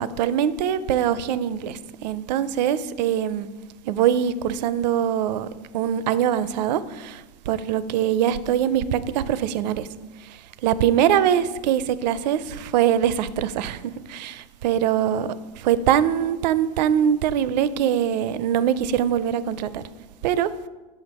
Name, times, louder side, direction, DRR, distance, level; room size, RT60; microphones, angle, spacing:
voice 1, 0.0-3.5 3.9-5.5 5.7-9.9 10.6-19.8 20.2-20.5, right 9 dB, 85° right, 0.5 m, -23 dB
7.0 x 6.0 x 4.1 m
supercardioid pair, 145°, 21 cm